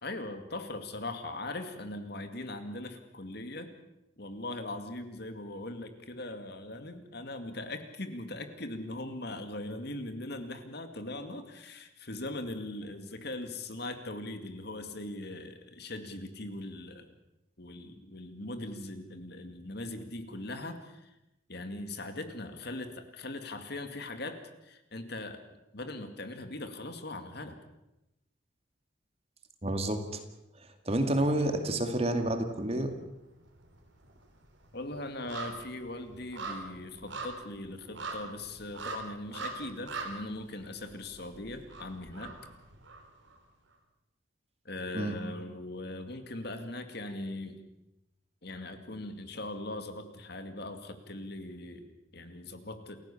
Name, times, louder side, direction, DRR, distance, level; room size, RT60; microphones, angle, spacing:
voice 1, 0.0-3.7 4.2-17.1 17.6-21.2 21.5-25.4 25.7-27.6 34.7-42.3 44.6-47.6 48.4-53.0, left 2 dB, 55° left, 8 dB, 2.3 m, -40 dB
voice 2, 29.6-30.2 30.9-32.9 44.9-45.2, right 1 dB, 30° right, 6 dB, 2.2 m, -29 dB
sound 1, 32.3-33.1 33.4-43.4 43.7-43.8, right 3 dB, 65° right, 4.2 m, -43 dB
29.0 x 15.5 x 7.2 m, 0.93 s
head